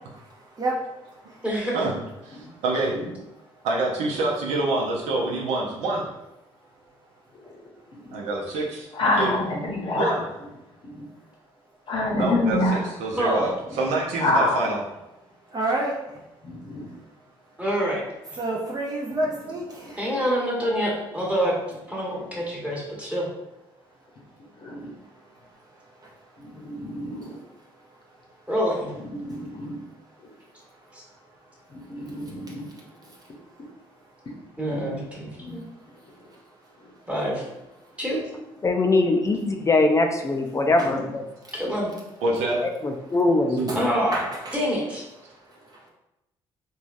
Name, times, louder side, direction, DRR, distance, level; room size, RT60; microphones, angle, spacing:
voice 1, 0.1-1.4 2.4-2.6 3.5-3.6 15.4-16.3 18.3-20.2 24.8-28.5 29.2-30.1 30.5-34.4 35.5-37.0 37.8-37.9 40.8-40.9 41.3-41.5 43.7-43.8 44.1-44.6 45.2-45.9, right 2 dB, 35° right, -3 dB, 0.6 m, -35 dB
voice 2, 1.4-1.8 13.2-13.5 17.6-18.0 20.0-21.6 21.9-23.3 28.5-28.9 30.9-31.0 34.6-35.6 37.1-37.4 38.0-38.2 41.5-41.9 43.7-44.2 44.5-45.0, equal, 10° right, -4 dB, 1.2 m, -26 dB
voice 3, 2.2-2.9 3.6-6.0 8.1-8.9 9.1-9.3 9.9-10.3 12.2-14.8 42.2-42.6 43.6-43.8, right 2 dB, 80° right, -3 dB, 0.6 m, -26 dB
voice 4, 8.9-10.1 11.9-12.8 14.2-14.6 16.4-16.9 24.6-24.9 26.6-27.3 29.2-29.8 31.9-32.7 34.7-34.9 35.4-35.5, left 2 dB, 50° left, -1 dB, 0.7 m, -26 dB
voice 5, 38.6-41.2 42.6-43.6, left 2 dB, 25° left, 4 dB, 0.4 m, -22 dB
3.1 x 2.2 x 2.5 m, 0.92 s
supercardioid pair, 60°, 11 cm